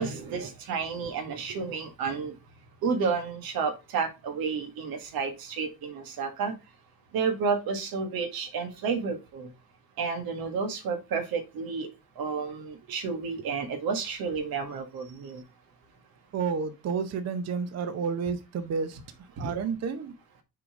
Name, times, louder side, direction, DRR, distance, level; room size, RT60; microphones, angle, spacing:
voice 1, 0.0-2.4 2.8-6.5 7.1-9.5 10.0-11.9 12.2-15.4 19.4-19.5, right 5 dB, 85° right, 7 dB, 1.7 m, -31 dB
voice 2, 16.3-19.0 19.4-20.1, right 5 dB, 45° right, 10 dB, 0.7 m, -30 dB
6.6 x 4.0 x 4.8 m, 0.25 s
cardioid pair, 135°, 35 cm